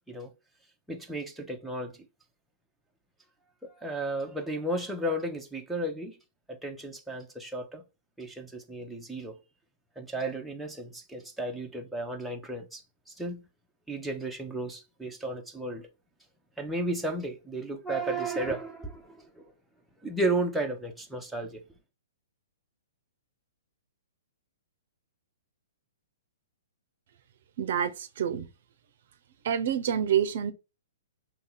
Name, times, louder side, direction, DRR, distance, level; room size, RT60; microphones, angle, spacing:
voice 1, 0.9-2.0 3.6-6.2 6.5-7.8 8.2-9.4 10.0-12.8 13.1-13.5 13.9-15.9 16.6-19.5 20.0-21.6, right 1 dB, ahead, 0.7 m, -33 dB
voice 2, 27.6-28.5 29.4-30.5, right 9 dB, 60° right, 0.5 m, -27 dB
2.8 x 2.7 x 3.8 m
hypercardioid pair, 130°, 0 cm